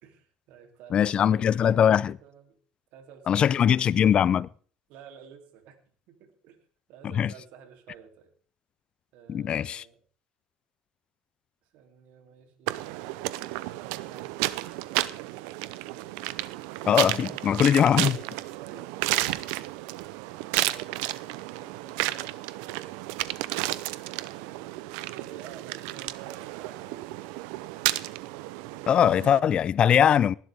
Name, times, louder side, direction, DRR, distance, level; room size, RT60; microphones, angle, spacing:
voice 1, 0.0-2.6 2.9-4.2 4.9-5.8 6.1-6.6 6.9-8.3 9.1-10.0 11.7-15.8 16.5-16.7 17.1-18.2 18.6-18.9 19.4-19.5 20.0-20.1 20.6-23.4 24.0-24.6 25.1-27.2, right 8 dB, 70° right, 3.3 m, -51 dB
voice 2, 0.9-2.2 3.3-4.5 7.1-7.3 9.3-9.8 16.9-18.2 28.9-30.3, left 9 dB, 40° left, 0.5 m, -21 dB
sound 1, 12.7-29.4, right 17 dB, 85° right, 0.7 m, -32 dB
19.0 x 11.5 x 3.7 m
cardioid pair, 115°, 3 cm